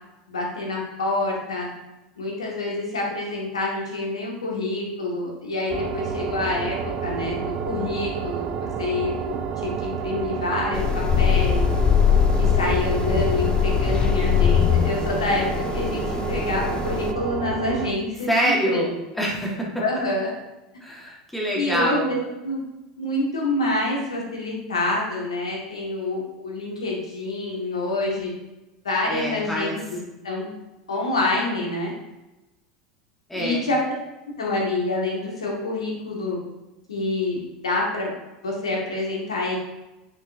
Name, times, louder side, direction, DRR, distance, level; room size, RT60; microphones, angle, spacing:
voice 1, 0.3-1.7 2.2-6.7 7.0-11.6 12.4-19.0 19.8-20.3 21.5-22.2 22.4-22.6 23.0-28.3 28.8-29.8 30.2-30.5 30.9-31.9 33.3-33.8 34.4-36.4 36.9-38.1 38.4-39.6, left 2 dB, 75° left, -2 dB, 2.1 m, -27 dB
sound 1, 5.7-17.9, right 7 dB, 40° right, 0.6 m, -30 dB
sound 2, 10.7-17.1, left 8 dB, 30° left, 0.5 m, -22 dB
voice 2, 18.3-19.7 20.8-22.1 29.1-29.8 33.3-33.6, equal, 5° left, -3 dB, 1.8 m, -25 dB
8.8 x 5.4 x 2.8 m, 1.0 s
figure-of-eight pair, 80°, 3 cm